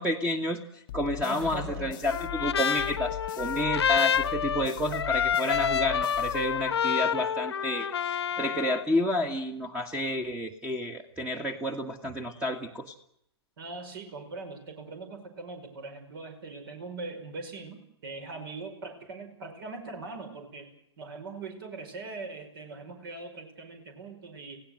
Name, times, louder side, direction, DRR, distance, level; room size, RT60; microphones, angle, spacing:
voice 1, 0.0-13.0, left 1 dB, 10° right, 6 dB, 1.7 m, -30 dB
sound 1, 0.9-7.0, left 17 dB, 45° left, 1.0 m, -41 dB
voice 2, 1.2-2.0 13.6-20.7 21.0-24.6, right 3 dB, 55° right, 6 dB, 5.3 m, -41 dB
Trumpet, 2.1-8.8, left 8 dB, 65° left, 1.2 m, -28 dB
28.5 x 17.0 x 7.9 m, 0.76 s
figure-of-eight pair, 115°, 14 cm